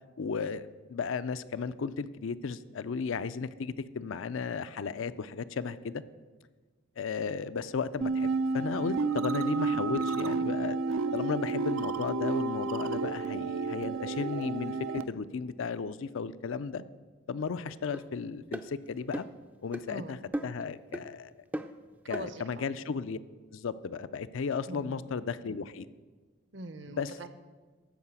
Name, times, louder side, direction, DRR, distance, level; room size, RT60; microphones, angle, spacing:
voice 1, 0.2-6.0 7.0-10.8 11.1-16.8 17.3-19.2 19.6-20.2 20.4-21.3 22.1-23.2 23.5-25.9 26.9-27.1, left 5 dB, 75° left, 13 dB, 0.4 m, -34 dB
sound 1, 8.0-15.0, right 4 dB, 85° right, 0.5 m, -31 dB
sound 2, 17.9-18.1 18.5-18.7 19.1-19.4 19.7-19.9 20.3-20.6 20.9-21.1 21.5-21.8 22.1-22.3, right 1 dB, 10° right, 0.4 m, -36 dB
voice 2, 22.0-22.7 24.7-25.0 26.5-27.3, right 2 dB, 60° right, 11 dB, 0.8 m, -42 dB
13.0 x 4.7 x 8.2 m, 1.3 s
head